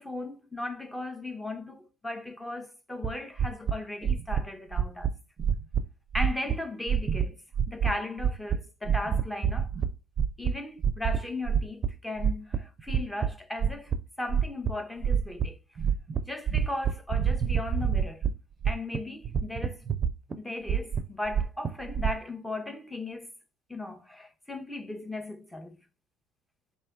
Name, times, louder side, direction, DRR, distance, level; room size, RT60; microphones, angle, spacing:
voice 1, 0.0-5.1 6.1-7.4 7.7-9.7 10.4-15.6 16.2-18.3 18.6-19.8 20.4-23.3 23.7-25.8, left 2 dB, 10° left, 0.8 m, -37 dB
sound 1, 3.0-3.1 3.4-3.7 4.0-4.4 4.7-5.1 5.4-5.8 6.1-6.5 6.9-7.3 7.5-7.9 8.2-8.6 8.8-9.9 10.2-10.5 10.8-11.2 11.5-11.9 12.2-13.3 13.6-14.0 14.3-14.7 15.0-15.4 15.8-16.2 16.5-18.3 18.6-19.0 19.2-20.3 20.7-22.2, right 7 dB, 35° right, 0.5 m, -26 dB
3.3 x 2.6 x 4.5 m
hypercardioid pair, 65°, 0 cm